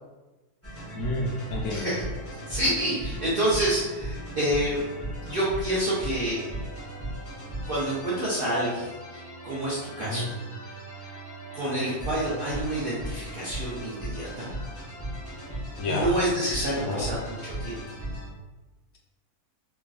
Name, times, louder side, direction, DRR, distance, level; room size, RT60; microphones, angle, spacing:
sound 1, 0.6-18.3, right 1 dB, 20° left, 0.3 m, -37 dB
voice 1, 0.9-1.9 10.0-10.3 15.8-16.1 16.8-17.1, left 1 dB, 70° left, -1 dB, 1.1 m, -30 dB
voice 2, 1.7-4.8 5.2-6.4 7.7-10.2 10.7-10.8 11.1-11.2 11.5-14.5 15.9-17.2 17.4-17.8, right 1 dB, 75° right, -7 dB, 0.5 m, -28 dB
3.0 x 2.5 x 2.3 m, 1.1 s
omnidirectional pair, 1.6 m